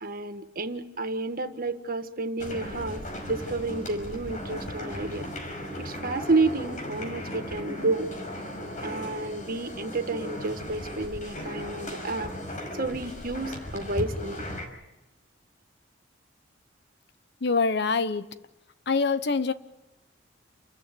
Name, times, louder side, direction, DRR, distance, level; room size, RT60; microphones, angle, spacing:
voice 1, 0.0-5.3 5.8-8.1 8.8-12.3 12.7-14.4, right 2 dB, 50° right, 1.5 m, -30 dB
sound 1, 2.4-14.7, equal, 40° left, 5.5 m, -37 dB
voice 2, 17.4-18.3 18.9-19.5, left 4 dB, 60° left, 1.0 m, -24 dB
29.0 x 14.5 x 9.2 m
head